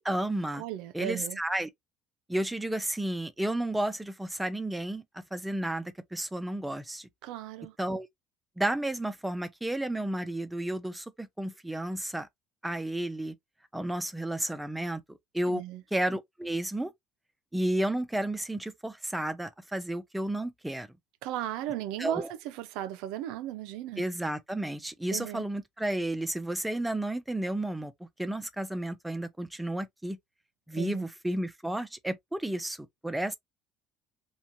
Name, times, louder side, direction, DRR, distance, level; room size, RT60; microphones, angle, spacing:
voice 1, 0.0-0.6 0.9-1.7 2.3-5.0 5.3-7.1 7.8-8.1 8.6-12.3 12.6-13.3 13.7-15.6 15.9-16.9 17.5-20.9 22.0-22.3 24.0-27.9 28.2-30.2 30.7-33.3, right 1 dB, 5° right, 0.4 m, -32 dB
voice 2, 0.6-1.4 7.2-7.7 15.5-15.8 21.2-22.2 22.6-24.0 25.1-25.4 30.8-31.0, right 12 dB, 75° right, 0.4 m, -36 dB
2.8 x 2.1 x 2.5 m
cardioid pair, 165°, 0 cm